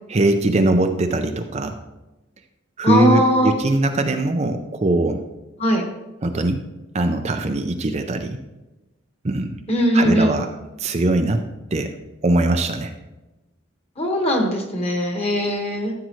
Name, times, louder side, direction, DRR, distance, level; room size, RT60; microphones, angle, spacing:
voice 1, 0.1-1.7 2.8-5.2 6.2-6.6 6.9-8.4 9.2-9.6 9.9-10.5 10.8-11.4 11.7-11.9 12.2-12.9, right 2 dB, 30° right, 6 dB, 0.5 m, -21 dB
voice 2, 2.8-3.6 5.6-5.8 9.7-10.3 14.0-15.9, equal, 30° left, 2 dB, 1.7 m, -19 dB
14.0 x 7.6 x 3.2 m, 1.0 s
head